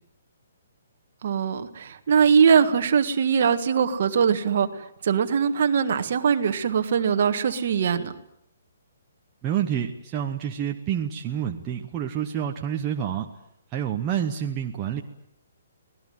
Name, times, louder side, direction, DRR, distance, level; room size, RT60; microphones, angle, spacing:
voice 1, 1.2-8.1, right 7 dB, 40° right, 8 dB, 1.7 m, -22 dB
voice 2, 9.4-13.3 13.7-15.0, right 9 dB, 15° right, 1 dB, 1.0 m, -28 dB
25.0 x 18.5 x 9.3 m, 0.73 s
hypercardioid pair, 175°, 0 cm